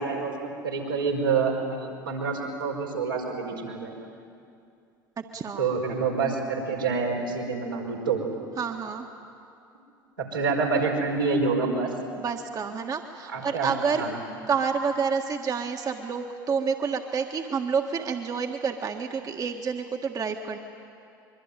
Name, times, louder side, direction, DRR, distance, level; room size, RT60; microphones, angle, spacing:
voice 1, 0.0-4.0 5.6-8.2 10.2-11.9 13.3-13.7 13.9-14.1, right 4 dB, 85° right, -3 dB, 4.9 m, -27 dB
voice 2, 5.2-5.7 8.6-9.1 12.2-14.0 14.5-20.6, right 6 dB, 35° right, 3 dB, 1.7 m, -29 dB
24.5 x 23.0 x 9.2 m, 2.5 s
figure-of-eight pair, 65°, 11 cm